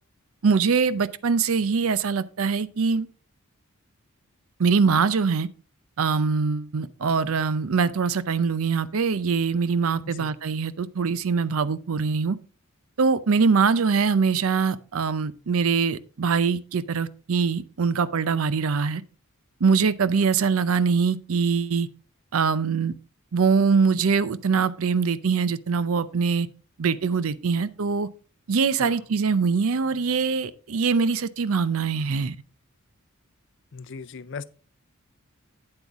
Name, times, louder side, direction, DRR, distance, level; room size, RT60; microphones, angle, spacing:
voice 1, 0.4-3.1 4.6-5.5 6.0-12.4 13.0-19.0 19.6-21.9 22.3-22.9 23.3-26.5 26.8-28.1 28.5-32.4, right 5 dB, 70° right, 0.5 m, -23 dB
voice 2, 33.7-34.4, left 5 dB, 55° left, 0.5 m, -37 dB
8.9 x 7.9 x 3.6 m
head